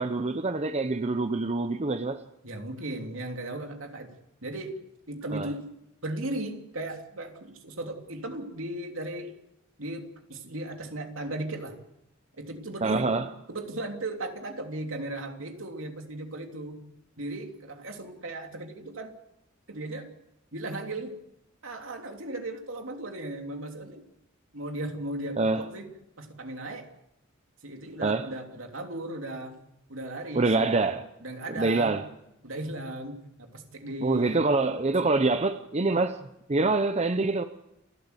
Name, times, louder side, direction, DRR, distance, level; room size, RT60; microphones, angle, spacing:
voice 1, 0.0-2.2 5.3-5.5 12.8-13.3 25.4-25.6 28.0-28.3 30.3-31.0 31.5-32.0 34.0-36.2 36.5-37.4, right 3 dB, 30° right, 0.7 m, -25 dB
voice 2, 2.4-4.2 4.4-4.8 5.1-5.7 6.0-9.4 9.8-11.8 12.3-13.2 13.5-16.8 17.2-19.1 19.7-20.1 20.5-21.2 21.6-24.0 24.5-25.9 26.2-26.9 27.6-29.6 29.9-30.7 31.2-32.0 32.4-34.4, right 1 dB, 70° right, 3.1 m, -36 dB
29.0 x 12.5 x 8.2 m
head